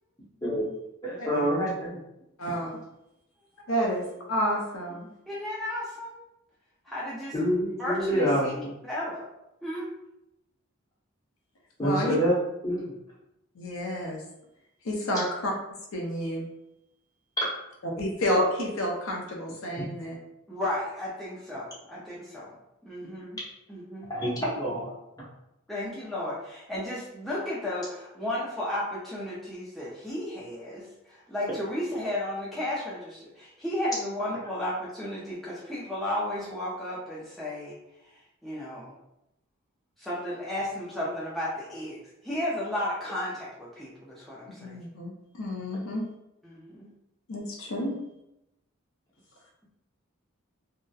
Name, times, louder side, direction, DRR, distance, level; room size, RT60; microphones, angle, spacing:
voice 1, 1.0-2.0 7.3-8.7 11.8-12.3 12.6-12.9 19.8-19.9 24.1-24.9, equal, 15° left, -7 dB, 0.7 m, -27 dB
voice 2, 2.4-2.8 3.7-5.1 11.8-12.2 13.6-14.2 14.8-15.5 15.9-16.4 18.0-20.2 44.6-45.1 45.4-46.0 47.3-48.0, equal, 70° left, 0 dB, 0.5 m, -29 dB
voice 3, 5.3-6.2 6.9-9.2 9.6-9.9 20.5-22.5 22.9-23.4 23.7-24.5 25.7-37.8 38.4-38.9 40.0-44.8 46.4-46.9, left 1 dB, ahead, -8 dB, 0.4 m, -34 dB
2.7 x 2.0 x 2.2 m, 0.87 s
head